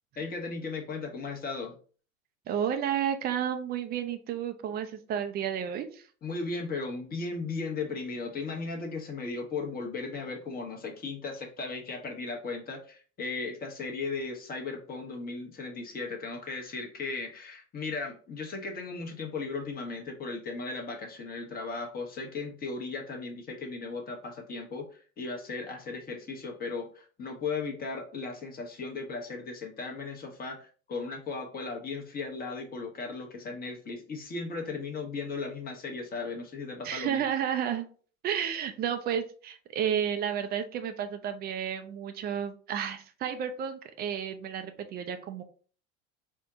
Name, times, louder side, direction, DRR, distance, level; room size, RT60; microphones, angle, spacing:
voice 1, 0.2-1.7 6.2-37.3, left 4 dB, 20° left, 2 dB, 1.0 m, -36 dB
voice 2, 2.5-6.1 36.8-37.8 38.2-45.4, right 9 dB, 25° right, 7 dB, 0.4 m, -31 dB
4.4 x 2.1 x 3.5 m, 0.41 s
figure-of-eight pair, 80°, 40 cm